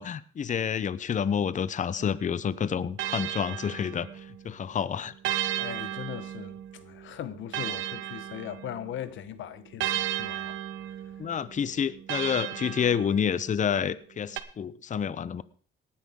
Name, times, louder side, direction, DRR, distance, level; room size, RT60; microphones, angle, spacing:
voice 1, 0.0-5.1 11.2-15.4, left 7 dB, 40° left, 0.7 m, -29 dB
sound 1, 2.0-4.5 5.2-9.0 9.8-13.6 14.4-14.5, right 12 dB, 75° right, 1.0 m, -35 dB
voice 2, 5.6-10.6, left 11 dB, 75° left, 1.0 m, -39 dB
18.5 x 9.9 x 3.7 m
cardioid pair, 90°, 20 cm